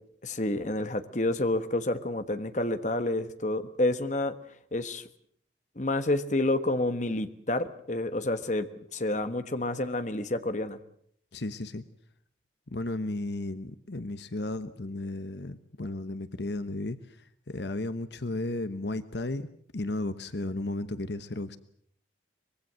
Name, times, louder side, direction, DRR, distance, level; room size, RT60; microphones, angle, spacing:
voice 1, 0.2-4.4 4.7-5.0 5.8-10.8, left 2 dB, 40° left, 10 dB, 1.3 m, -29 dB
voice 2, 11.3-11.8 12.7-19.5 19.7-21.6, left 2 dB, 65° left, 12 dB, 1.1 m, -34 dB
24.5 x 21.5 x 7.6 m, 0.64 s
head